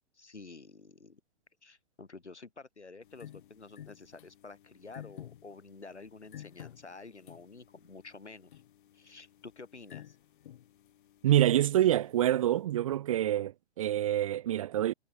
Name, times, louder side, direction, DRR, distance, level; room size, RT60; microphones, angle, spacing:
voice 1, 0.1-1.2 1.6-8.6 8.9-10.2, left 3 dB, 80° left, 5.9 m, -50 dB
sound 1, 3.0-12.6, left 11 dB, 45° left, 2.9 m, -53 dB
voice 2, 11.2-14.9, right 12 dB, 30° right, 0.6 m, -26 dB
figure-of-eight pair, 120°, 34 cm